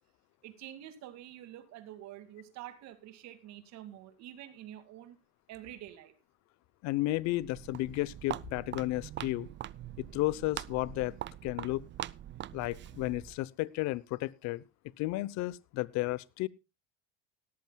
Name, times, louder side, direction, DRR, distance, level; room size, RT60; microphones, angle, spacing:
voice 1, 0.4-5.2 5.5-6.1, right 12 dB, 55° right, 10 dB, 2.4 m, -47 dB
voice 2, 6.8-9.5 10.0-11.2 11.4-11.8 12.5-14.6 15.0-16.5, left 18 dB, 60° left, 21 dB, 0.9 m, -33 dB
Walk footsteps, 7.3-13.4, right 12 dB, 35° right, 0.6 m, -43 dB
18.0 x 13.5 x 2.3 m, 0.28 s
supercardioid pair, 95°, 32 cm